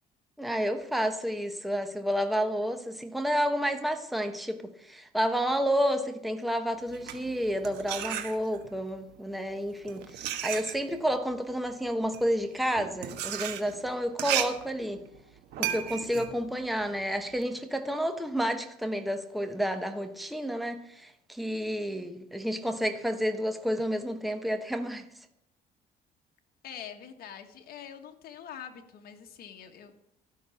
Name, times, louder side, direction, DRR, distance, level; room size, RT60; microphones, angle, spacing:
voice 1, 0.4-15.0 15.6-25.0, equal, ahead, 6 dB, 1.0 m, -30 dB
sound 1, 6.8-8.8 9.6-17.5, right 11 dB, 80° right, 1.3 m, -35 dB
voice 2, 26.6-29.9, left 8 dB, 65° left, 4 dB, 1.4 m, -44 dB
13.0 x 6.0 x 7.1 m, 0.80 s
cardioid pair, 110°, 17 cm